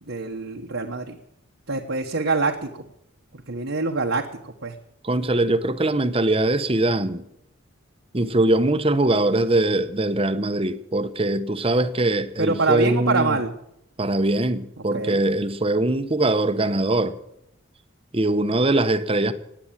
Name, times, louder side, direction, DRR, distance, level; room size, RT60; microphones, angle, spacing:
voice 1, 0.1-1.2 1.7-2.8 3.3-4.7 12.4-13.5 14.9-15.2, right 3 dB, 70° right, 1.3 m, -25 dB
voice 2, 5.0-7.2 8.1-13.4 14.0-17.2 18.1-19.3, right 2 dB, 25° right, 0.9 m, -22 dB
18.0 x 9.6 x 7.4 m
head